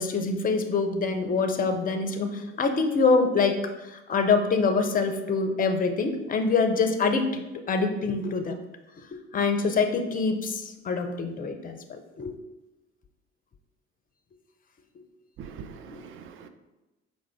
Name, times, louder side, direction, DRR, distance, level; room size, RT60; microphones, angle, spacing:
voice 1, 0.0-7.3 7.7-8.6 9.3-12.3 15.9-16.0, left 4 dB, 25° left, 6 dB, 0.5 m, -25 dB
voice 2, 15.4-16.5, right 6 dB, 40° right, 8 dB, 0.4 m, -43 dB
4.8 x 2.5 x 3.3 m, 1.0 s
figure-of-eight pair, 50°, 32 cm